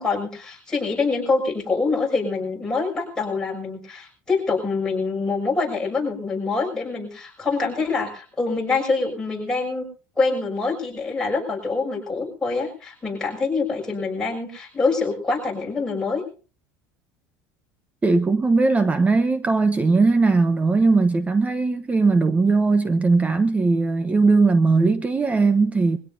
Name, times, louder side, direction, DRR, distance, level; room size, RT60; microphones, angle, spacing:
voice 1, 0.0-9.9 10.2-16.2, left 4 dB, 10° left, 6.7 m, -25 dB
voice 2, 18.0-26.0, right 3 dB, 15° right, 0.9 m, -19 dB
23.0 x 16.5 x 2.7 m
supercardioid pair, 125°, 8 cm